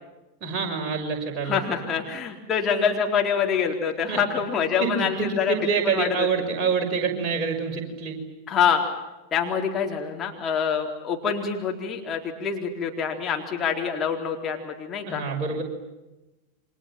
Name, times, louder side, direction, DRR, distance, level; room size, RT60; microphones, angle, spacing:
voice 1, 0.4-1.6 4.1-4.2 4.8-8.2 15.0-15.6, right 5 dB, 30° right, 2 dB, 6.4 m, -26 dB
voice 2, 1.4-6.3 8.5-8.9 9.3-15.2, left 7 dB, 25° left, 1 dB, 4.0 m, -26 dB
29.5 x 25.5 x 7.5 m, 1.0 s
figure-of-eight pair, 90°, 0 cm